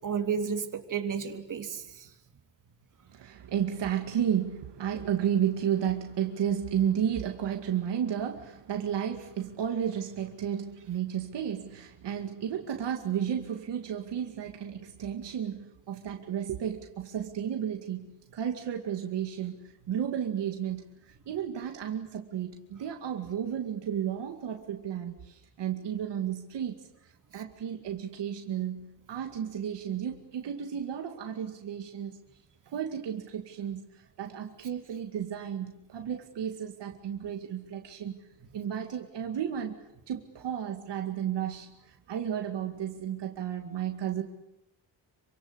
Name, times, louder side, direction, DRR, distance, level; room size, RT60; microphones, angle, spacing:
voice 1, 0.0-2.1 27.3-27.4, right 6 dB, 45° right, 4 dB, 3.5 m, -32 dB
voice 2, 3.1-26.9 27.3-32.2 32.7-44.2, right 9 dB, 70° right, 4 dB, 2.4 m, -33 dB
27.5 x 25.5 x 8.1 m, 0.86 s
cardioid pair, 135°, 44 cm